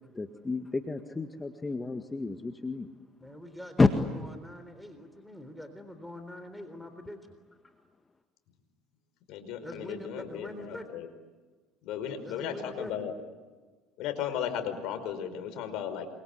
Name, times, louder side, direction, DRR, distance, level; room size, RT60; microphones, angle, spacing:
voice 1, 0.2-2.9 3.8-3.9, left 3 dB, 20° left, 6 dB, 1.9 m, -28 dB
voice 2, 3.2-7.4 9.6-10.9 12.2-12.9, left 1 dB, 5° left, 8 dB, 3.8 m, -44 dB
voice 3, 9.3-11.1 11.8-13.1 14.0-16.1, left 8 dB, 65° left, 8 dB, 5.1 m, -35 dB
28.5 x 24.5 x 8.4 m, 1.4 s
hypercardioid pair, 75°, 0 cm